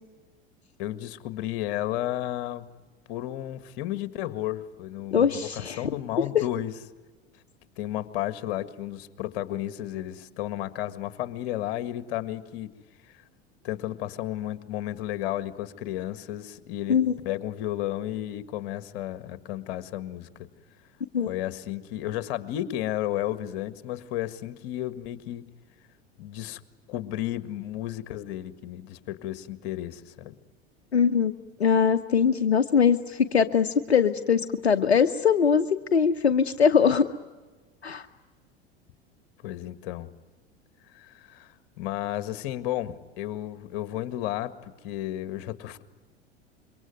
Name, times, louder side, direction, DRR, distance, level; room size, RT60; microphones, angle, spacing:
voice 1, 0.8-2.6 3.1-6.7 7.8-12.7 13.6-17.0 17.3-20.3 21.3-25.5 26.2-26.6 26.9-30.3 39.4-40.1 40.9-45.8, left 13 dB, 55° left, 12 dB, 1.8 m, -33 dB
voice 2, 5.1-5.8 16.9-17.1 21.1-21.3 30.9-31.3 31.6-35.7 35.9-37.1 37.8-38.1, left 6 dB, 85° left, 8 dB, 0.9 m, -22 dB
27.0 x 23.5 x 9.3 m, 1.3 s
figure-of-eight pair, 80°, 32 cm